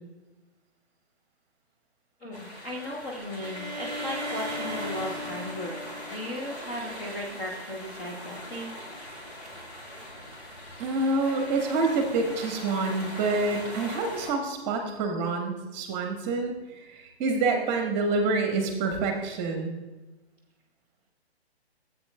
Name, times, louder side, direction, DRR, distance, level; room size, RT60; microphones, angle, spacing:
voice 1, 2.2-8.7, equal, 10° left, -3 dB, 0.6 m, -36 dB
sound 1, 2.3-14.3, left 1 dB, 35° left, 2.9 m, -40 dB
Bowed string instrument, 3.4-7.2, equal, 45° right, 0.6 m, -39 dB
voice 2, 10.8-19.8, right 3 dB, 20° right, 3 dB, 1.1 m, -27 dB
14.0 x 8.2 x 2.2 m, 1.1 s
hypercardioid pair, 145°, 32 cm